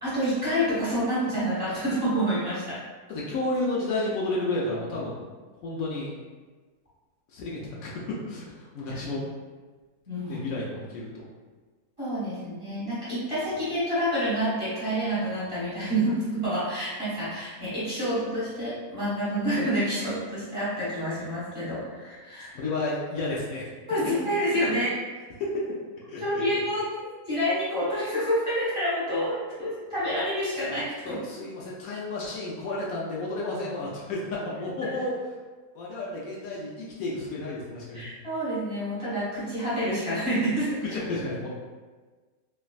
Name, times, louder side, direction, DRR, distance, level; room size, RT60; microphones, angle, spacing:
voice 1, 0.0-2.8 10.1-10.4 12.0-22.5 23.9-24.9 26.2-31.2 37.9-40.8, equal, 20° right, -12 dB, 1.4 m, -28 dB
voice 2, 3.1-5.2 5.6-6.1 7.3-9.3 10.3-11.3 22.5-23.7 25.4-25.7 26.1-26.4 31.0-35.1 35.7-38.1 40.9-41.5, left 2 dB, 75° left, -4 dB, 1.0 m, -31 dB
3.3 x 2.4 x 2.3 m, 1.4 s
omnidirectional pair, 1.6 m